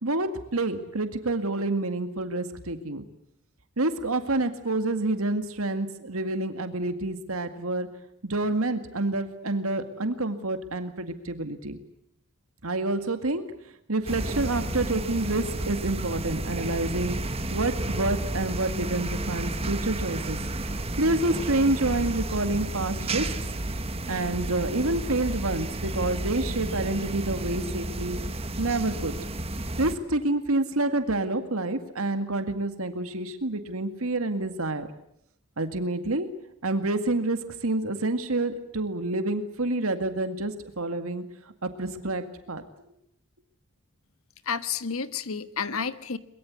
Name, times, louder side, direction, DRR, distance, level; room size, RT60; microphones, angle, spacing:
voice 1, 0.0-3.0 3.8-7.9 8.2-11.8 12.6-13.4 13.9-20.4 21.0-23.3 24.1-28.2 28.6-29.1 29.8-34.9 35.6-36.3 36.6-41.2 41.6-42.6, right 2 dB, 75° right, 9 dB, 2.0 m, -28 dB
sound 1, 14.1-30.0, right 1 dB, 25° right, 1.5 m, -32 dB
voice 2, 44.5-46.2, left 6 dB, 75° left, 13 dB, 1.4 m, -30 dB
23.0 x 22.0 x 9.5 m, 0.73 s
head